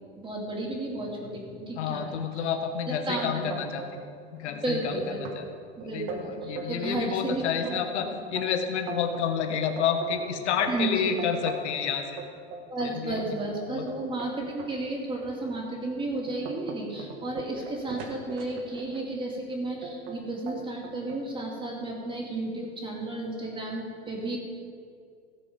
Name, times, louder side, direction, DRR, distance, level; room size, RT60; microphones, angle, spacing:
voice 1, 0.2-2.5 3.1-3.5 4.6-5.5 5.8-7.8 10.7-11.2 12.7-24.4, right 2 dB, 15° right, -1 dB, 2.6 m, -33 dB
voice 2, 1.8-3.8 4.3-5.0 5.3-5.5 5.8-12.1 12.8-13.8, left 7 dB, 75° left, 5 dB, 1.6 m, -29 dB
sound 1, 3.2-4.1 4.4-4.9 5.2-5.4 5.8-7.0 7.5-11.8 12.2-14.7 15.3-15.5 16.0-19.0 19.8-20.2 20.5-21.2, right 4 dB, 50° right, 1.9 m, -40 dB
17.0 x 6.9 x 5.4 m, 2.3 s
supercardioid pair, 130°, 34 cm